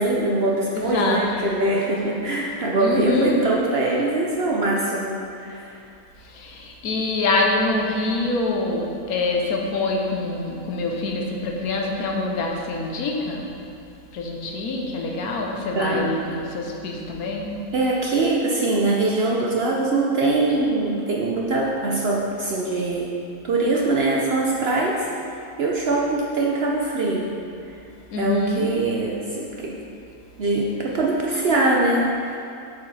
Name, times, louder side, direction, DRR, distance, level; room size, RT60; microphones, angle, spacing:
voice 1, 0.0-5.7 15.7-16.1 17.7-23.2 23.4-25.1 25.6-27.4 27.7-27.8 28.2-29.7 30.4-32.4, right 2 dB, 55° right, -3 dB, 0.7 m, -22 dB
voice 2, 0.7-1.5 2.8-3.3 6.2-13.4 14.1-17.5 28.1-28.7, left 2 dB, 75° left, 0 dB, 1.3 m, -25 dB
7.5 x 4.8 x 4.1 m, 2.6 s
omnidirectional pair, 1.6 m